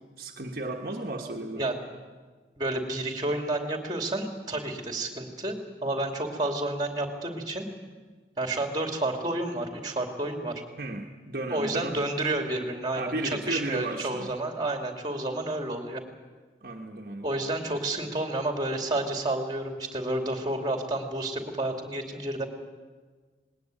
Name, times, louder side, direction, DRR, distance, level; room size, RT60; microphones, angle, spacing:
voice 1, 0.0-1.7 10.8-12.1 13.0-14.3 16.6-17.4, right 2 dB, 55° right, 1 dB, 1.4 m, -34 dB
voice 2, 2.6-7.7 8.4-10.6 11.5-16.0 17.2-22.5, right 2 dB, 25° right, 4 dB, 2.6 m, -30 dB
19.5 x 19.0 x 9.1 m, 1.4 s
head